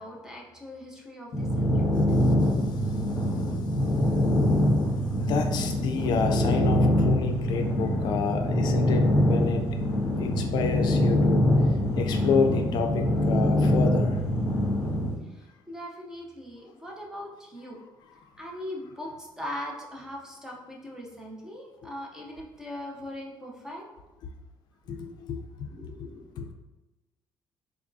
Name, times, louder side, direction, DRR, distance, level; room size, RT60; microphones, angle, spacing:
voice 1, 0.0-2.0 15.2-17.8 18.4-23.8 25.7-26.5, left 1 dB, 5° right, -1 dB, 0.6 m, -40 dB
sound 1, 1.3-15.1, left 1 dB, 40° left, 1.4 m, -24 dB
voice 2, 5.2-9.8 10.2-11.4 12.0-14.2 24.9-25.7 26.0-26.5, left 5 dB, 60° left, 5 dB, 0.4 m, -29 dB
3.9 x 3.4 x 2.6 m, 1.1 s
cardioid pair, 145°, 8 cm